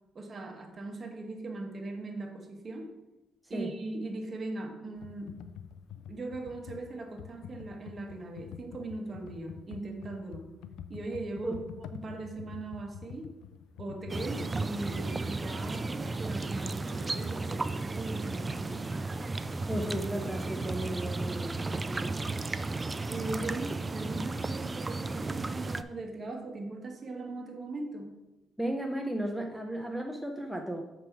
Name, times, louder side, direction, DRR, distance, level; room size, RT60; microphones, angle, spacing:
voice 1, 0.1-2.9 3.5-5.3 6.1-10.5 10.9-13.3 13.8-18.8 23.1-28.1, right 2 dB, 40° right, 3 dB, 1.5 m, -39 dB
Computer keyboard, 5.0-14.5, left 9 dB, 85° left, 0.4 m, -46 dB
sound 1, 14.1-25.8, right 3 dB, 25° right, 0.4 m, -34 dB
voice 2, 19.7-22.5 28.6-30.8, right 1 dB, ahead, 1 dB, 0.8 m, -35 dB
7.6 x 5.3 x 4.7 m, 1.0 s
cardioid pair, 90°, 0 cm